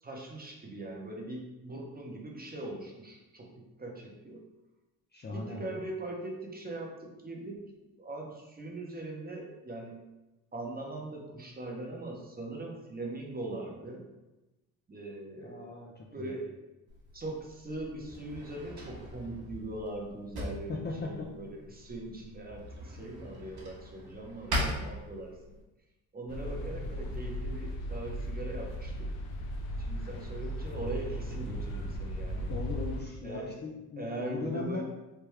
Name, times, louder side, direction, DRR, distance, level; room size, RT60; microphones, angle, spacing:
voice 1, 0.0-4.4 5.3-10.0 10.5-14.1 14.9-15.7 16.1-16.6 17.1-20.7 21.0-25.4 26.1-29.1 29.9-32.5 33.2-33.5 34.0-34.8, right 2 dB, 20° right, 0 dB, 0.7 m, -41 dB
voice 2, 5.1-5.7 15.4-16.4 20.7-21.3 32.5-34.8, left 3 dB, 25° left, -1 dB, 0.4 m, -38 dB
Drawer open or close, 16.9-25.6, equal, 60° right, 1.1 m, -40 dB
sound 1, 26.3-33.0, equal, 85° left, 0.5 m, -36 dB
3.3 x 2.2 x 3.1 m, 1.1 s
supercardioid pair, 65°, 42 cm